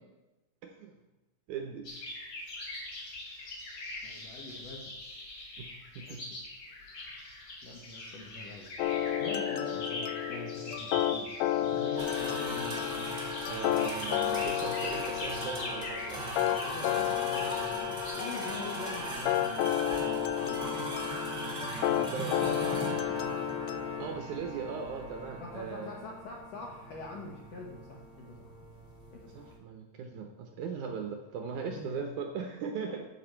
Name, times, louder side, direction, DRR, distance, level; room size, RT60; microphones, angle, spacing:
voice 1, 0.6-0.9 1.5-1.9 5.6-6.3 13.5-16.2 21.9-22.7 23.9-25.9 29.3-33.0, right 5 dB, 75° right, 4 dB, 1.9 m, -39 dB
sound 1, 1.8-19.0, left 2 dB, 40° left, 3.1 m, -42 dB
voice 2, 4.0-4.9 6.0-6.4 7.6-8.7 9.2-13.0 16.6-19.7 20.4-21.1 24.0-24.1 25.4-28.5 29.1-29.5 31.7-32.1 32.9-33.0, left 2 dB, 65° left, -1 dB, 1.7 m, -44 dB
sound 2, 8.8-24.1, left 12 dB, 80° left, 2.2 m, -32 dB
sound 3, 12.0-29.6, right 1 dB, 20° right, 1.1 m, -39 dB
14.5 x 5.9 x 4.5 m, 1.1 s
omnidirectional pair, 4.3 m